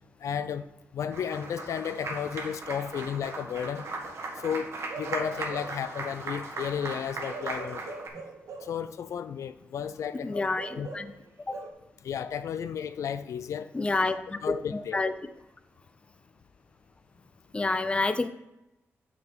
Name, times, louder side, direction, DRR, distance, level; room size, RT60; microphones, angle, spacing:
voice 1, 0.2-0.6 0.9-3.9 4.4-8.0 8.6-10.5 10.8-10.9 12.0-13.7 14.4-15.0, left 8 dB, 80° left, 12 dB, 0.4 m, -33 dB
Applause, 1.1-8.1, right 2 dB, 65° right, 1.4 m, -38 dB
Bark / Livestock farm animals working animals, 4.9-5.9 7.3-8.8 10.6-11.7, right 4 dB, 90° right, 1.0 m, -42 dB
voice 2, 10.2-11.1 11.5-11.6 13.7-14.4 14.7-15.1 17.5-18.3, left 3 dB, 20° left, 11 dB, 0.5 m, -28 dB
7.3 x 6.0 x 4.6 m, 0.93 s
wide cardioid pair, 115°, 5 cm